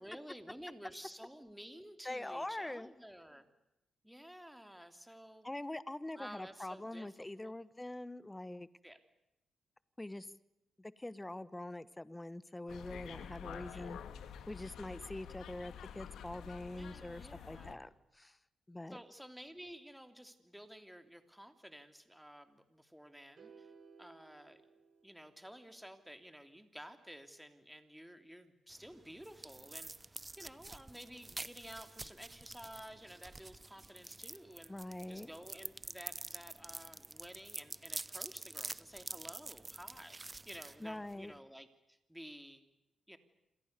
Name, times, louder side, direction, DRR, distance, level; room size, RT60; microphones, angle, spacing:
voice 1, 0.0-3.4 4.0-5.5 6.2-7.1 7.4-7.5 8.8-9.0 13.7-13.9 16.7-17.7 18.9-23.7 24.0-24.6 25.0-29.9 30.4-34.7 35.1-40.2 40.5-42.6 43.1-43.2, equal, 5° right, 8 dB, 3.2 m, -52 dB
voice 2, 2.0-2.9 5.4-8.7 10.0-10.3 10.8-14.0 14.5-18.4 18.7-19.0 34.7-35.3 40.8-41.3, left 1 dB, 15° left, 16 dB, 1.3 m, -44 dB
sound 1, 12.7-17.7, left 8 dB, 85° left, 2.2 m, -49 dB
sound 2, 23.4-25.7, right 5 dB, 65° right, 5.9 m, -60 dB
sound 3, 28.7-41.4, right 2 dB, 20° right, 0.9 m, -48 dB
28.0 x 27.0 x 6.9 m, 0.88 s
cardioid pair, 95°, 0 cm